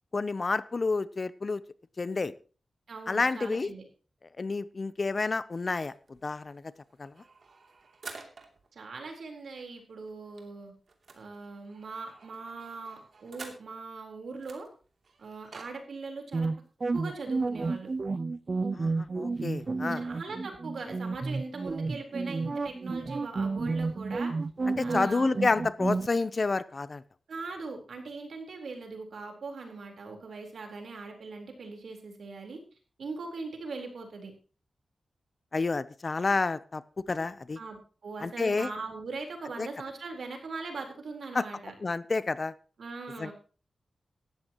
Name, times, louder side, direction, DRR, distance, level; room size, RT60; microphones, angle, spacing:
voice 1, 0.1-1.6 2.0-2.3 3.1-3.7 4.4-5.9 6.2-6.7 7.0-7.1 18.7-20.0 24.7-27.0 35.5-36.8 37.1-37.6 38.2-38.7 39.6-39.7 41.3-41.5 41.8-42.5 43.2-43.3, left 3 dB, 40° left, 16 dB, 0.7 m, -29 dB
voice 2, 2.9-3.8 8.7-10.7 11.1-14.7 15.2-16.5 16.9-17.9 19.9-24.3 24.8-25.3 27.3-32.6 33.0-34.3 37.6-41.7 42.8-43.3, right 3 dB, 75° right, 3 dB, 4.1 m, -40 dB
sound 1, 5.7-8.7 9.0-9.1 9.4-9.5 9.8-13.9 14.4-15.7, right 4 dB, 60° right, 2.9 m, -50 dB
sound 2, 16.3-26.1, right 3 dB, 40° right, 0.5 m, -31 dB
17.5 x 13.5 x 3.0 m, 0.37 s
wide cardioid pair, 125°, 0 cm